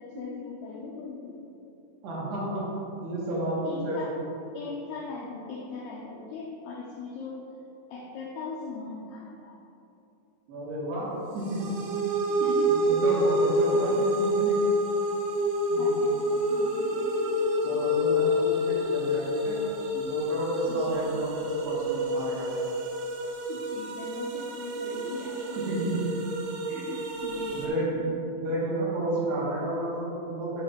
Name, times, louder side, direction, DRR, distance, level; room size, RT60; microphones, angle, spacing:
voice 1, 0.0-1.4 3.6-4.1 4.5-7.4 7.9-9.6 12.4-12.9 13.7-13.8 15.8-17.9 20.7-21.1 23.5-25.8 27.2-28.2, left 4 dB, 85° left, -2 dB, 2.4 m, -39 dB
voice 2, 2.0-2.7 3.0-4.1 10.5-11.8 12.3-12.4 12.7-14.6 15.7-16.0 17.6-19.6 19.9-22.5 25.6-26.0 26.7-27.0 27.5-28.0 28.4-30.6, right 1 dB, 70° right, -7 dB, 3.0 m, -31 dB
sound 1, 11.4-27.7, equal, 90° right, 3.2 m, -28 dB
9.0 x 3.1 x 5.0 m, 2.8 s
omnidirectional pair, 5.5 m